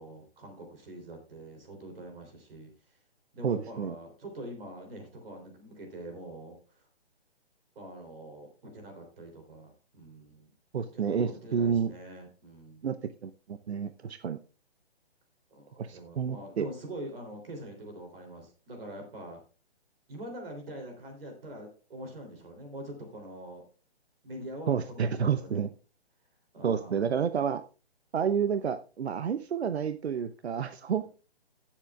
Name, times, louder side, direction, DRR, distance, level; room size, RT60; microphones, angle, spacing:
voice 1, 0.0-3.0 3.3-6.9 7.7-10.5 10.9-12.8 15.5-19.4 20.1-23.6 24.2-25.6 26.5-27.2 30.9-31.1, right 1 dB, 60° right, 4 dB, 3.3 m, -44 dB
voice 2, 3.4-3.9 10.7-11.9 12.8-13.0 13.2-14.4 15.8-16.7 24.7-25.7 26.6-27.6 28.1-31.1, right 7 dB, 80° right, 11 dB, 0.7 m, -29 dB
17.0 x 7.4 x 2.4 m, 0.34 s
hypercardioid pair, 155°, 32 cm